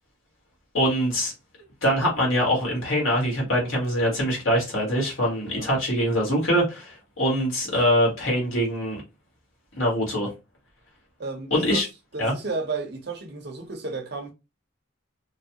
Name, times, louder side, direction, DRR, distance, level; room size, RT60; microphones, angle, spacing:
voice 1, 0.7-1.3 1.8-9.0 9.8-10.3 11.5-11.9 12.2-12.3, equal, 75° left, 1.6 m, -23 dB
voice 2, 5.4-5.7 11.2-11.8 12.1-14.3, right 3 dB, 50° right, 0.7 m, -33 dB
3.1 x 2.4 x 2.8 m
head